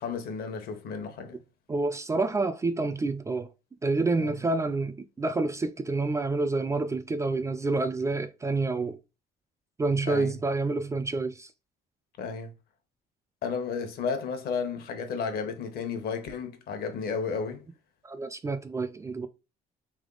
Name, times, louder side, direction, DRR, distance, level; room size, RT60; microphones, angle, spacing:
voice 1, 0.0-1.4 4.2-4.4 10.1-10.3 12.2-12.5 13.4-17.6, left 5 dB, 65° left, 1.0 m, -33 dB
voice 2, 1.7-3.5 3.8-9.0 9.8-11.5 18.0-19.3, right 3 dB, 15° right, 0.3 m, -28 dB
3.4 x 3.1 x 3.8 m
cardioid pair, 110°, 17 cm